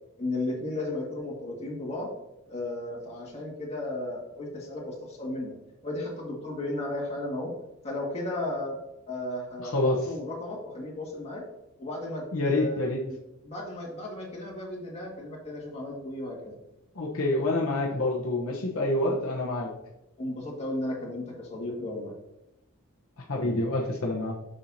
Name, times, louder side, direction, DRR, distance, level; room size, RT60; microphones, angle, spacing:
voice 1, 0.2-2.1 2.5-5.5 5.8-7.5 7.8-8.8 9.1-11.4 11.8-12.9 13.4-16.6 20.2-22.1 23.3-23.6, left 1 dB, 30° left, -3 dB, 2.0 m, -34 dB
voice 2, 9.6-10.0 12.3-13.0 16.9-19.7 23.3-24.3, left 2 dB, 70° left, -2 dB, 1.0 m, -27 dB
7.2 x 6.5 x 2.8 m, 0.92 s
head